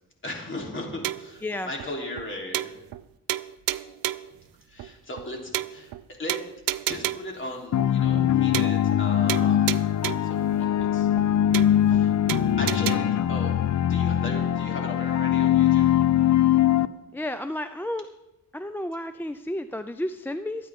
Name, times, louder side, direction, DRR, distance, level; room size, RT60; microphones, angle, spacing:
voice 1, 0.2-2.7 4.7-5.9 6.2-6.4 6.9-9.8 10.2-11.1 11.9-12.2 12.6-13.6 13.9-15.9, left 1 dB, 35° left, 0 dB, 3.5 m, -37 dB
sound 1, 1.0-1.4 1.8-1.9 2.2-2.3 2.5-3.0 3.3-4.3 4.8-4.9 5.2-5.3 5.5-6.0 6.3-7.4 7.8-7.9 8.2-8.3 8.5-9.0 9.3-10.4 10.8-10.9 11.2-11.3 11.5-12.0 12.3-13.0, right 14 dB, 75° right, 0.5 m, -31 dB
sound 2, 7.7-16.9, left 11 dB, 55° left, 0.6 m, -22 dB
voice 2, 17.1-18.1 18.5-20.7, left 1 dB, 5° left, 10 dB, 0.4 m, -32 dB
22.5 x 9.2 x 3.7 m, 0.94 s
cardioid pair, 90°, 35 cm